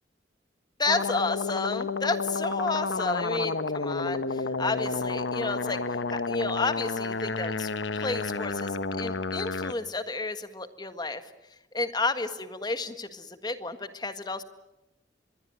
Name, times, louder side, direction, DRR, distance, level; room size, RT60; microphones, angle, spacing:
voice 1, 0.8-7.7 7.9-11.3 11.7-14.4, left 3 dB, 25° left, 10 dB, 1.7 m, -31 dB
sound 1, 0.9-9.7, left 3 dB, 85° left, 1.2 m, -30 dB
24.5 x 21.5 x 9.5 m, 0.92 s
head